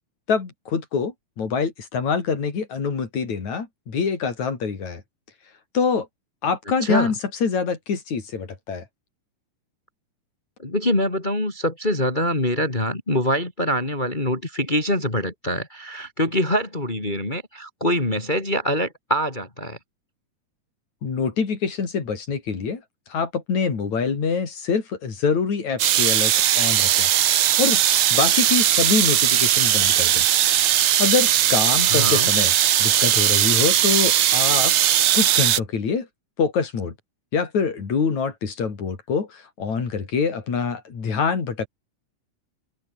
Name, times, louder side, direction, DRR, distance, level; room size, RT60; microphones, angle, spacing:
voice 1, 0.3-5.0 5.7-6.1 6.4-7.2 7.4-8.9 21.0-22.8 23.1-27.1 27.6-30.2 31.0-32.5 32.8-34.7 35.1-36.1 36.4-37.0 37.3-41.7, left 5 dB, 65° left, 5.3 m, -25 dB
voice 2, 6.8-7.1 10.6-19.8 31.9-32.3, equal, 15° left, 3.1 m, -24 dB
sound 1, 25.8-35.6, right 11 dB, 60° right, 1.5 m, -19 dB
omnidirectional pair, 3.6 m